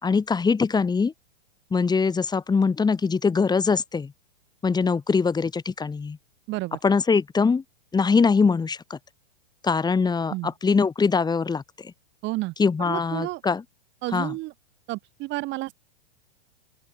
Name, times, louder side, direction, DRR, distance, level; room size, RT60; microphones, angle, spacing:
voice 1, 0.0-1.1 1.7-4.1 4.6-6.2 6.8-7.6 7.9-9.0 9.6-11.9 12.6-13.6 14.1-14.3, left 5 dB, 15° left, 4.4 m, -22 dB
voice 2, 6.5-6.8 10.3-10.5 12.2-12.5 12.8-13.4 14.0-14.5 14.9-15.7, right 20 dB, 40° right, 2.4 m, -31 dB
open air
hypercardioid pair, 115°, 30 cm